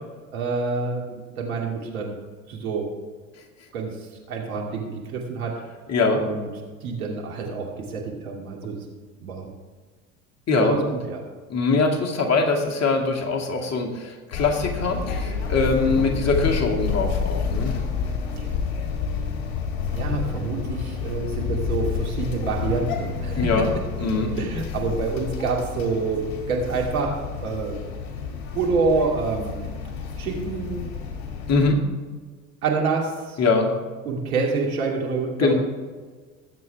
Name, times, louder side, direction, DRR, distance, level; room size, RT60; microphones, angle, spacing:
voice 1, 0.3-2.2 2.5-2.9 3.7-3.9 4.3-5.6 6.2-6.5 6.8-8.8 9.2-9.5 10.5-11.2 15.8-16.0 18.4-18.5 19.9-23.6 24.3-27.8 28.5-29.6 30.2-30.9 32.6-33.4 34.0-35.5, right 4 dB, 75° right, -1 dB, 2.8 m, -27 dB
voice 2, 5.9-6.2 10.5-10.8 11.5-17.8 23.4-23.7 24.0-24.4 31.5-31.8 33.4-33.7 35.4-35.5, left 3 dB, 35° left, 1 dB, 2.3 m, -22 dB
sound 1, 14.3-31.7, left 6 dB, 60° left, 2.6 m, -29 dB
20.0 x 7.7 x 3.5 m, 1.4 s
hypercardioid pair, 70°, 42 cm